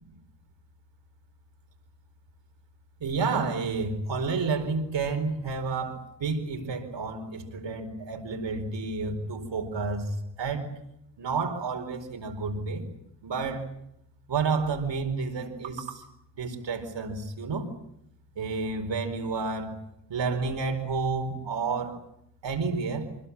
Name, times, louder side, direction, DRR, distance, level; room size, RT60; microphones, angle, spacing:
voice 1, 3.0-10.7 11.2-12.8 13.2-13.7 14.3-16.0 16.3-17.7 18.4-19.8 20.1-22.0 22.4-23.1, right 4 dB, 85° right, 5 dB, 4.6 m, -30 dB
26.5 x 21.0 x 8.6 m, 0.78 s
cardioid pair, 75°, 42 cm